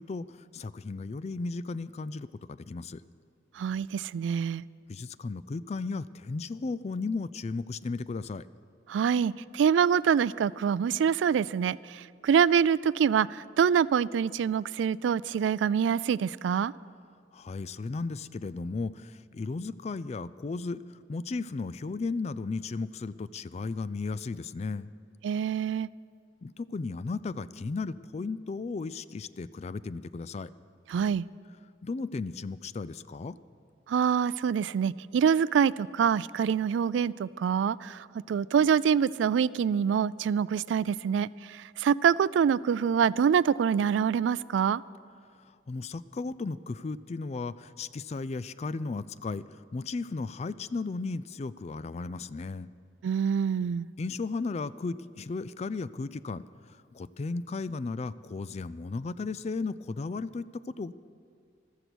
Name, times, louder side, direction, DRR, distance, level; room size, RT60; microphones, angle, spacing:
voice 1, 0.0-3.0 4.9-8.4 17.3-24.9 26.4-30.5 31.8-33.4 45.7-52.7 54.0-60.9, left 3 dB, 35° left, 17 dB, 0.3 m, -35 dB
voice 2, 3.6-4.6 8.9-16.7 25.2-25.9 30.9-31.3 33.9-44.8 53.0-53.9, right 7 dB, 90° right, 20 dB, 0.3 m, -25 dB
15.0 x 13.0 x 6.2 m, 2.2 s
head